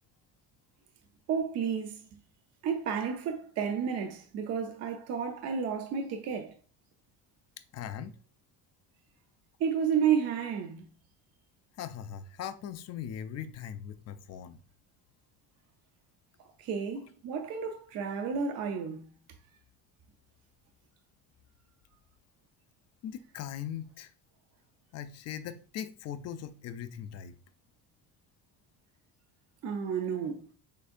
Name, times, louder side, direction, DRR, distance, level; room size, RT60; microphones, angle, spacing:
voice 1, 1.3-2.1 2.6-6.6 9.6-10.9 16.4-19.1 29.6-30.5, right 7 dB, 45° right, 0.5 m, -31 dB
voice 2, 7.7-8.2 11.8-14.6 23.0-24.1 24.9-27.3, left 9 dB, 45° left, 0.4 m, -40 dB
6.5 x 2.7 x 2.5 m
cardioid pair, 160°, 37 cm